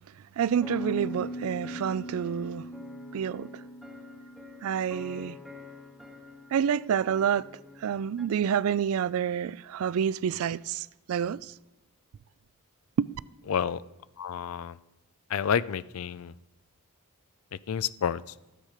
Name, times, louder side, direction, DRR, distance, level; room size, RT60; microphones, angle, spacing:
voice 1, 0.4-2.7 3.1-3.5 4.6-5.4 6.5-11.5 13.0-13.1, right 8 dB, 65° right, 0.3 m, -28 dB
Piano, 0.6-6.2, equal, 30° left, 0.7 m, -41 dB
sound 1, 0.6-8.3, left 4 dB, ahead, 1.1 m, -48 dB
voice 2, 13.5-13.8 14.2-14.8 15.3-16.3 17.7-18.2, left 7 dB, 65° left, 0.4 m, -29 dB
14.0 x 9.0 x 4.9 m
head